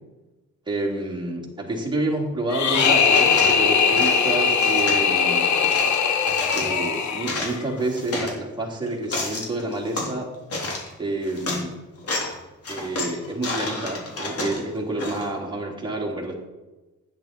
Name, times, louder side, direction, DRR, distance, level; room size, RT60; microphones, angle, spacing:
voice 1, 0.7-5.5 6.5-10.3 11.0-11.7 12.7-16.3, right 2 dB, 15° right, -2 dB, 3.4 m, -29 dB
sound 1, 2.5-7.6, left 6 dB, 70° left, 1.4 m, -20 dB
sound 2, 2.7-3.6 3.9-5.0 5.6-6.7 7.1-8.3 8.9-10.1 10.5-10.9 11.3-11.6 12.0-12.4 12.6-15.3, left 2 dB, 50° left, 3.4 m, -31 dB
10.5 x 9.9 x 4.5 m, 1.1 s
cardioid pair, 90°, 30 cm